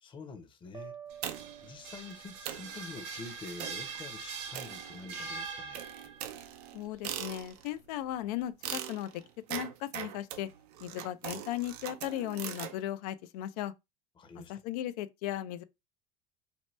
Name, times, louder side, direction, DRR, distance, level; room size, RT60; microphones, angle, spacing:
voice 1, 0.0-0.9 1.6-5.9 14.2-14.5, left 4 dB, 25° left, 0.7 m, -46 dB
sound 1, 0.7-2.6, right 8 dB, 20° right, 0.4 m, -49 dB
sound 2, 1.1-6.3, right 5 dB, 70° right, 0.9 m, -42 dB
sound 3, 1.2-1.7 2.1-2.2 2.4-2.8 3.6-3.9 4.5-5.3 5.7-7.8 8.6-12.8, right 11 dB, 90° right, 0.5 m, -41 dB
voice 2, 6.7-9.1 9.5-10.5 10.8-13.7 14.5-15.6, left 12 dB, 85° left, 0.4 m, -36 dB
2.8 x 2.1 x 3.1 m
supercardioid pair, 120°, 20 cm